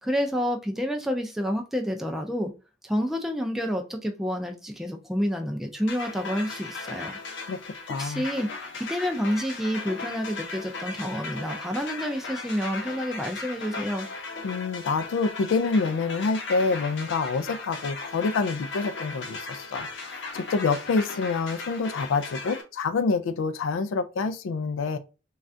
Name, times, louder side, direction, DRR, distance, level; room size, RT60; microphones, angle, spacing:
voice 1, 0.0-2.5 2.8-7.2 8.0-8.5 8.7-14.1, equal, ahead, 0.3 m, -29 dB
sound 1, 5.9-22.6, left 3 dB, 65° left, 0.8 m, -37 dB
voice 2, 7.9-8.2 14.4-25.0, left 4 dB, 85° left, 0.4 m, -27 dB
3.2 x 2.4 x 2.5 m
head